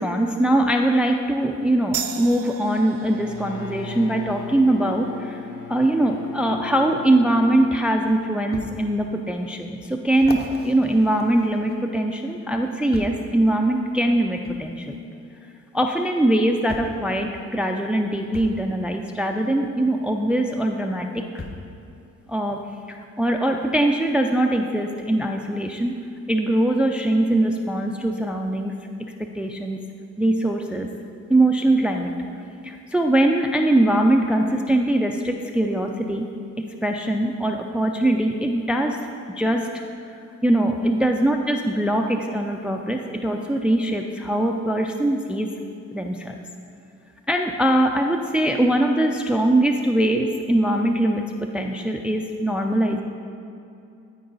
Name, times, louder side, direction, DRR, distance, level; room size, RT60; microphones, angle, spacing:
voice 1, 0.0-5.4 5.7-15.0 15.7-21.4 22.3-22.6 22.9-25.9 26.3-28.7 29.2-29.8 30.2-30.9 31.3-32.1 32.6-36.3 36.8-39.0 39.4-39.7 40.4-45.5 45.9-46.4 47.3-53.0, right 1 dB, 5° right, 3 dB, 0.4 m, -22 dB
sound 1, 1.9-9.0, right 9 dB, 75° right, 0.6 m, -39 dB
Bowed string instrument, 3.1-7.9, left 6 dB, 80° left, 0.5 m, -38 dB
sound 2, 8.5-8.7 9.3-9.4 10.1-12.0 12.9-13.3 14.4-14.6 15.9-16.0 16.7-17.0 18.3-18.6 20.2-20.3 21.4-21.7 22.5-22.6, left 2 dB, 35° left, 0.9 m, -37 dB
12.5 x 4.7 x 3.9 m, 2.6 s
cardioid pair, 90°, 30 cm